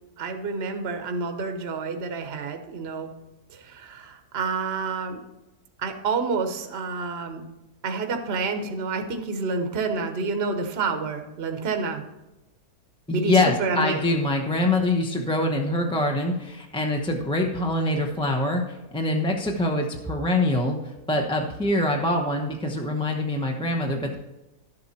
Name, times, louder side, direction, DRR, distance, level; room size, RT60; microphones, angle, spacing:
voice 1, 0.2-3.1 3.5-5.2 5.8-7.4 7.8-12.0 13.1-14.0, right 4 dB, 45° right, 5 dB, 1.1 m, -28 dB
voice 2, 13.1-24.2, left 1 dB, 5° left, 1 dB, 0.7 m, -24 dB
11.5 x 7.8 x 4.3 m, 0.97 s
omnidirectional pair, 1.7 m